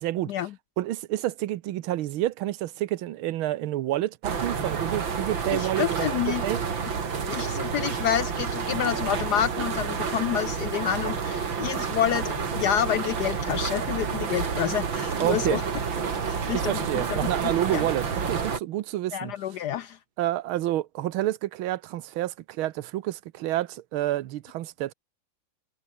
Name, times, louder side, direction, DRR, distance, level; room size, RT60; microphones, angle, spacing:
voice 1, 0.0-0.3 0.8-6.6 15.2-15.6 16.5-19.3 20.2-24.9, right 14 dB, 85° right, 1.7 m, -29 dB
sound 1, 4.2-18.6, right 6 dB, 65° right, 3.2 m, -29 dB
voice 2, 5.5-6.4 7.3-15.6 16.3-17.8 19.1-20.0, left 10 dB, 70° left, 1.0 m, -29 dB
omnidirectional pair, 2.2 m